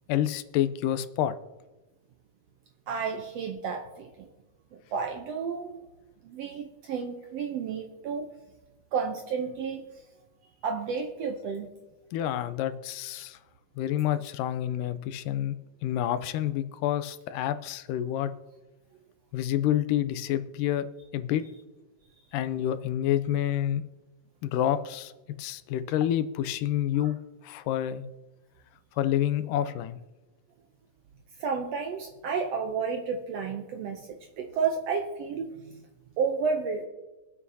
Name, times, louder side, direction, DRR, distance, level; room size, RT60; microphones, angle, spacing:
voice 1, 0.1-1.3 12.1-13.4 13.8-15.5 15.8-18.3 19.3-20.9 21.1-21.4 22.3-23.8 24.4-25.1 25.4-27.2 27.4-28.1 29.0-30.0, left 11 dB, 90° left, 12 dB, 2.2 m, -28 dB
voice 2, 2.9-4.3 4.9-5.8 6.2-8.3 8.9-9.9 10.6-11.7 26.9-27.1 31.4-35.9 36.2-36.9, right 5 dB, 75° right, 3 dB, 1.5 m, -31 dB
23.5 x 8.1 x 2.8 m, 1.1 s
omnidirectional pair, 3.7 m